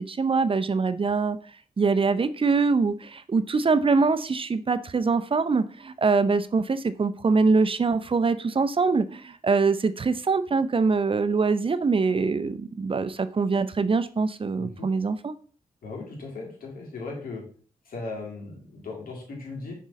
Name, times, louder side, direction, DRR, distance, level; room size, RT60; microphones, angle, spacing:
voice 1, 0.0-1.4 1.8-15.3, right 4 dB, 40° right, 0.5 m, -24 dB
voice 2, 14.6-14.9 15.8-17.4 17.9-19.7, left 3 dB, 80° left, 2.0 m, -37 dB
6.3 x 3.7 x 4.1 m
supercardioid pair, 45°, 15 cm